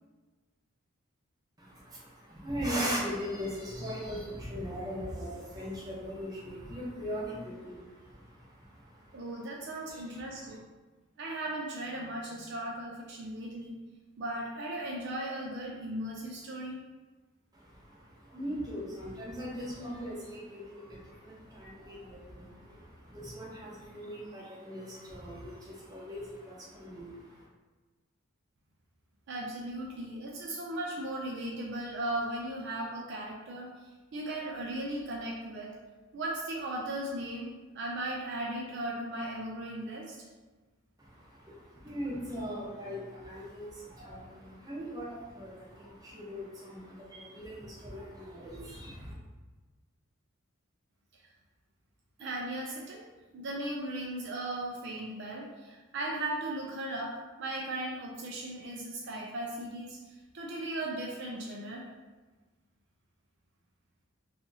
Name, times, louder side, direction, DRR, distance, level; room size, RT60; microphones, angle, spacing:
voice 1, 1.6-9.5 9.9-10.6 17.5-27.5 41.0-49.1, equal, 20° right, -6 dB, 0.8 m, -40 dB
voice 2, 9.1-10.6 11.2-13.8 14.2-16.8 29.3-33.7 34.1-35.7 36.1-40.2 52.2-53.0 53.3-60.0 60.3-61.8, right 1 dB, 55° right, -2 dB, 0.4 m, -37 dB
2.8 x 2.4 x 3.9 m, 1.3 s
head